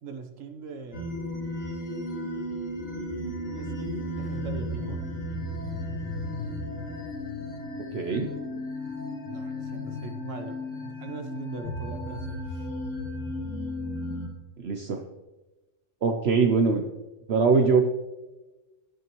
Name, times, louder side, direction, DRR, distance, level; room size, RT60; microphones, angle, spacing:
voice 1, 0.0-1.1 3.4-5.0 9.3-12.7, right 4 dB, 85° right, 7 dB, 1.3 m, -40 dB
sound 1, 0.9-14.3, left 1 dB, 90° left, 2.6 m, -34 dB
voice 2, 7.9-8.3 14.6-15.0 16.0-16.8 17.3-17.9, right 5 dB, 60° right, 4 dB, 1.0 m, -22 dB
13.5 x 8.9 x 3.0 m, 1.1 s
omnidirectional pair, 1.3 m